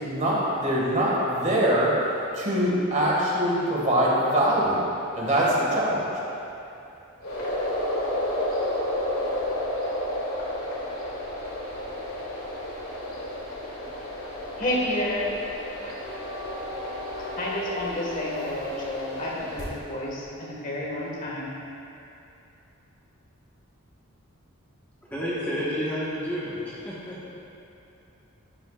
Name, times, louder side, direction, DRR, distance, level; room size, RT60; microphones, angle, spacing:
voice 1, 0.0-1.9 2.3-4.8 5.2-6.0, equal, 35° right, -5 dB, 1.9 m, -23 dB
sound 1, 7.2-19.6, left 1 dB, 75° left, 2.4 m, -32 dB
voice 2, 14.6-15.3 17.4-21.5, left 1 dB, 35° left, -4 dB, 1.7 m, -30 dB
voice 3, 25.1-27.3, equal, 10° left, -10 dB, 1.4 m, -30 dB
12.5 x 10.5 x 2.5 m, 2.8 s
head